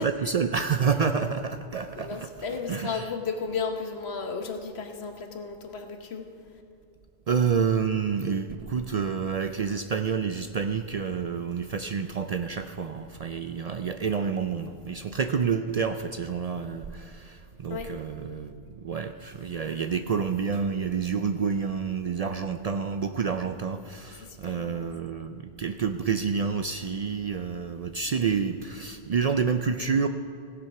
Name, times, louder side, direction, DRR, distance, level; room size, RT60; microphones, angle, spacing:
voice 1, 0.0-3.1 7.3-30.1, right 6 dB, 55° right, 8 dB, 0.4 m, -28 dB
voice 2, 1.9-6.3 17.7-18.0 24.2-24.9, left 5 dB, 85° left, 5 dB, 1.4 m, -34 dB
16.5 x 7.7 x 5.8 m, 2.4 s
omnidirectional pair, 1.1 m